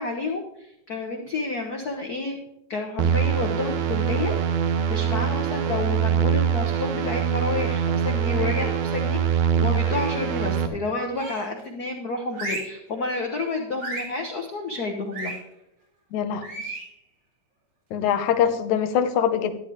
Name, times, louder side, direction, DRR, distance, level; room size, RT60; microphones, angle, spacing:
voice 1, 0.0-2.4 2.7-4.4 4.9-15.4, left 3 dB, 55° left, 2 dB, 1.0 m, -30 dB
sound 1, 3.0-10.7, right 8 dB, 75° right, 2.3 m, -23 dB
sound 2, 8.3-8.8 9.8-10.3 11.1-11.6 12.3-12.8 13.8-14.2 15.1-15.4 16.4-16.9, right 2 dB, 60° right, 5.0 m, -35 dB
voice 2, 16.1-16.5 17.9-19.5, left 8 dB, 85° left, 11 dB, 2.3 m, -23 dB
13.0 x 10.5 x 3.5 m, 0.81 s
omnidirectional pair, 3.3 m